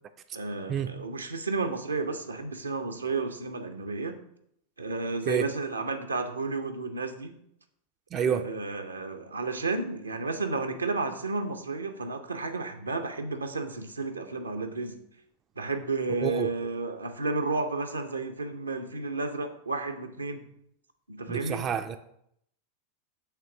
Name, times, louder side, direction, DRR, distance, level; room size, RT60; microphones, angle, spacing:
voice 1, 0.3-4.2 4.8-7.4 8.1-15.0 15.6-20.4 21.1-21.7, right 3 dB, 80° right, 0.6 m, -32 dB
voice 2, 8.1-8.5 16.2-16.5 21.3-22.0, right 8 dB, 30° right, 0.3 m, -28 dB
6.6 x 3.1 x 5.9 m
figure-of-eight pair, 90°, 0 cm